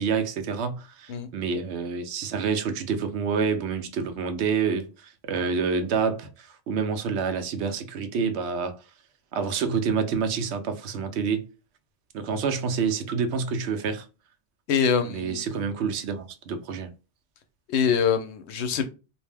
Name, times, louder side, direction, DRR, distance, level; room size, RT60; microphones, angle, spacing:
voice 1, 0.0-8.8 9.3-11.5 12.1-14.1 15.0-16.9, right 5 dB, 85° right, 0.9 m, -28 dB
voice 2, 14.7-15.4 17.7-18.9, left 6 dB, 90° left, 0.9 m, -24 dB
2.5 x 2.1 x 3.2 m
omnidirectional pair, 1.1 m